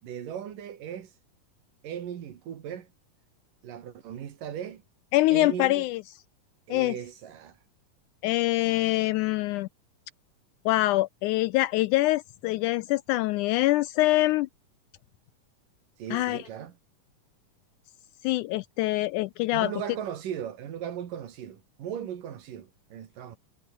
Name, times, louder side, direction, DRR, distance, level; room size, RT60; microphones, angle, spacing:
voice 1, 0.0-1.1 1.8-2.9 3.6-4.8 5.3-5.9 6.7-7.6 16.0-16.8 19.5-23.4, right 9 dB, 75° right, 3.7 m, -37 dB
voice 2, 5.1-6.0 6.7-6.9 8.2-9.7 10.7-14.5 16.1-16.4 18.2-19.7, left 18 dB, 80° left, 1.8 m, -24 dB
omnidirectional pair, 3.9 m